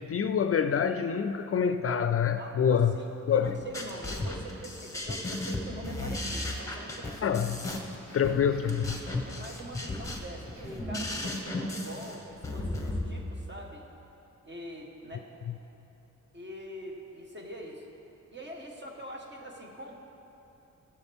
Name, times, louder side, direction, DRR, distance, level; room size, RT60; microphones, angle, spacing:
voice 1, 0.0-2.9 3.3-3.6 7.2-7.7 8.1-9.0, left 7 dB, 50° left, 9 dB, 0.4 m, -26 dB
voice 2, 2.4-7.4 9.2-13.9 14.4-15.3 16.3-17.8 18.3-20.0, right 1 dB, 35° right, -1 dB, 1.6 m, -44 dB
sound 1, 3.4-13.0, left 2 dB, 10° left, 1.3 m, -35 dB
sound 2, 6.1-11.3, right 1 dB, 60° right, 2.4 m, -53 dB
19.5 x 7.5 x 3.6 m, 3.0 s
wide cardioid pair, 125°, 31 cm